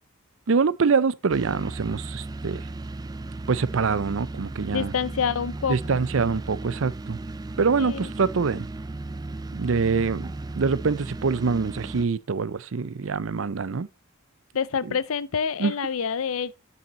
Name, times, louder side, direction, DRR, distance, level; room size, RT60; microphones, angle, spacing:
voice 1, 0.5-2.6 3.5-4.9 5.7-7.2 7.6-8.7 9.5-13.9 15.6-15.7, right 5 dB, 65° right, 0.5 m, -25 dB
sound 1, 1.3-12.1, right 2 dB, 20° right, 0.4 m, -35 dB
voice 2, 4.7-6.1 7.8-8.1 14.5-16.5, left 6 dB, 75° left, 0.5 m, -27 dB
9.1 x 5.7 x 4.0 m
head